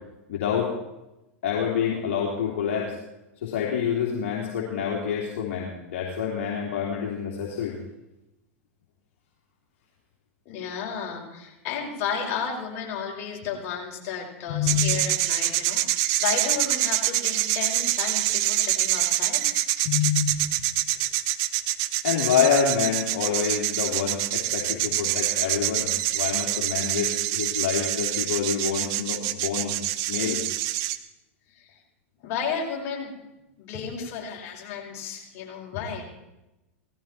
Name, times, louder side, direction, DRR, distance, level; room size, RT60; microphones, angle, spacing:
voice 1, 0.3-0.7 1.4-3.0 3.4-7.8 14.5-14.9 19.8-20.3 22.0-29.7 30.1-30.4, left 7 dB, 65° left, -3 dB, 3.2 m, -27 dB
voice 2, 10.5-19.4 31.5-31.8 32.2-33.2 33.6-36.0, left 6 dB, 45° left, -1 dB, 5.4 m, -33 dB
sound 1, 14.7-31.0, right 14 dB, 50° right, 1.0 m, -26 dB
18.0 x 15.0 x 4.5 m, 0.95 s
hypercardioid pair, 100°, 7 cm